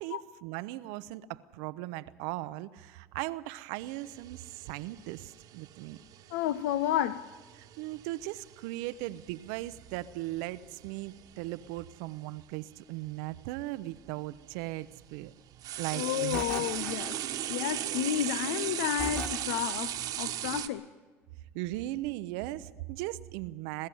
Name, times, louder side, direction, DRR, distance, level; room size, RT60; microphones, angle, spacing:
voice 1, 0.0-6.0 7.6-15.3 15.8-16.7 17.1-17.2 21.5-23.9, right 17 dB, 75° right, 0.6 m, -38 dB
Tolet Flushing and sink water, 3.8-11.9 13.1-13.2 14.0-20.7, right 12 dB, 60° right, 1.2 m, -39 dB
voice 2, 6.3-7.3 15.9-17.2 17.5-20.8, left 12 dB, 80° left, 0.5 m, -31 dB
sound 1, 16.3-17.6 19.0-20.1, left 1 dB, 20° left, 2.5 m, -39 dB
21.5 x 13.5 x 9.1 m
hypercardioid pair, 80°, 7 cm